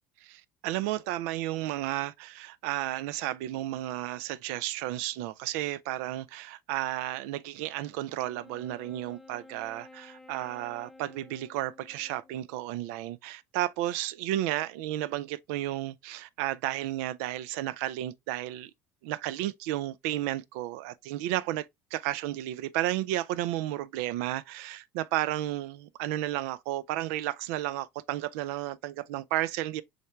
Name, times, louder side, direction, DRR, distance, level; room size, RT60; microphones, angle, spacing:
voice 1, 0.2-18.7 19.0-21.7 21.9-29.8, right 14 dB, 75° right, 0.4 m, -33 dB
Wind instrument woodwind instrument, 8.1-12.6, left 3 dB, 5° left, 0.6 m, -53 dB
6.3 x 3.3 x 2.3 m
hypercardioid pair, 80°, 8 cm